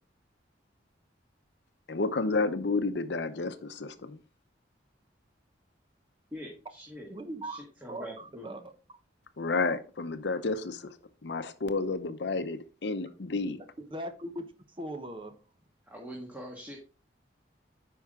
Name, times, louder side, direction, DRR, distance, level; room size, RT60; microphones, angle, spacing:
voice 1, 1.9-4.2 9.4-10.9 11.2-13.6, left 3 dB, 70° left, 0.7 m, -31 dB
voice 2, 6.3-7.1 7.4-8.6 15.9-16.8, equal, 10° right, 1.5 m, -43 dB
voice 3, 7.1-8.7 13.8-14.5 14.8-15.4, right 1 dB, 30° right, 0.8 m, -40 dB
9.3 x 5.5 x 3.6 m
head